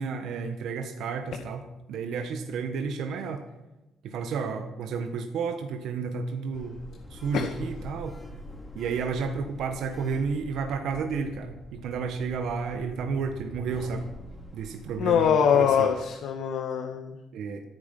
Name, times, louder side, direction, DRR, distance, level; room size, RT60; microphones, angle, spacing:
voice 1, 0.0-3.4 4.0-6.8 7.1-8.2 8.7-14.1 14.5-15.9 17.3-17.6, right 5 dB, 80° right, 6 dB, 1.5 m, -31 dB
Sliding door, 6.5-16.1, left 1 dB, 10° left, 3.8 m, -45 dB
voice 2, 15.0-17.1, left 8 dB, 80° left, 3 dB, 1.9 m, -23 dB
26.0 x 9.6 x 5.5 m, 0.98 s
cardioid pair, 90°, 0 cm